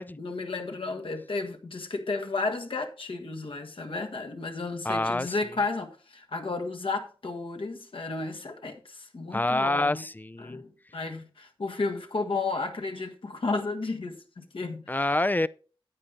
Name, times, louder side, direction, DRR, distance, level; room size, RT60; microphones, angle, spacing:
voice 1, 0.0-10.0 10.4-14.8, left 3 dB, 70° left, 1.6 m, -33 dB
voice 2, 4.8-5.4 9.3-10.6 14.9-15.5, left 2 dB, 20° left, 0.5 m, -27 dB
9.7 x 8.7 x 3.9 m
cardioid pair, 45°, 9 cm